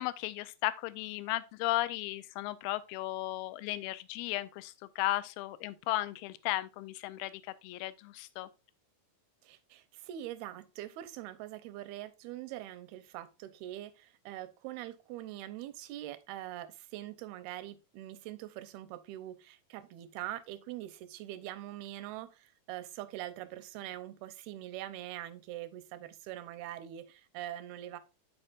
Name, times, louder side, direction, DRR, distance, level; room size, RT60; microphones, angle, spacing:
voice 1, 0.0-8.5, left 16 dB, 80° left, 2.2 m, -35 dB
voice 2, 9.4-28.0, right 13 dB, 85° right, 2.6 m, -43 dB
13.0 x 4.8 x 2.5 m
omnidirectional pair, 4.4 m